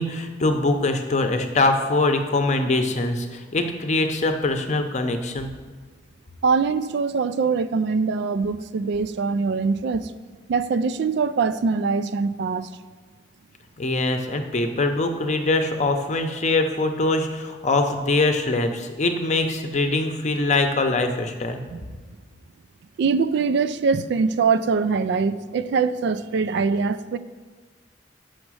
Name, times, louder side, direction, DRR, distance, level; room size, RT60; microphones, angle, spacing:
voice 1, 0.0-5.5 13.8-21.6, left 2 dB, 40° left, 0.7 m, -23 dB
voice 2, 6.4-10.1 10.5-12.7 21.7-21.8 23.0-27.2, right 5 dB, 65° right, 0.3 m, -23 dB
6.4 x 6.1 x 6.2 m
head